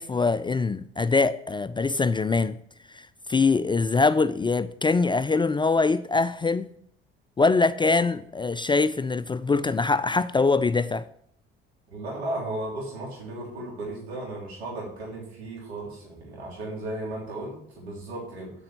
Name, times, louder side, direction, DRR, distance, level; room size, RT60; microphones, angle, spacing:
voice 1, 0.0-2.6 2.9-6.7 7.4-11.1, left 4 dB, 15° left, 0.4 m, -23 dB
voice 2, 11.9-18.5, right 1 dB, 85° right, 3.2 m, -35 dB
7.8 x 5.4 x 7.3 m
hypercardioid pair, 55°, 31 cm